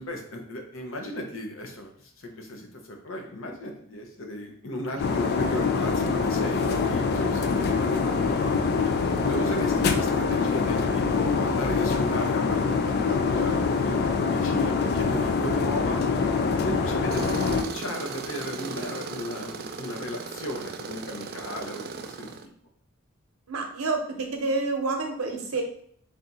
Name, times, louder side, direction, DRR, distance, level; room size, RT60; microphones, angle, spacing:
voice 1, 0.0-8.6 9.3-16.0 16.6-22.4, left 1 dB, 65° left, 3 dB, 0.8 m, -35 dB
sound 1, 5.0-17.6, left 5 dB, 50° left, 0.4 m, -25 dB
Tools, 17.1-22.5, right 5 dB, 45° right, 0.3 m, -37 dB
voice 2, 23.5-25.6, right 3 dB, 85° right, 4 dB, 0.8 m, -29 dB
3.5 x 2.7 x 4.0 m, 0.63 s
head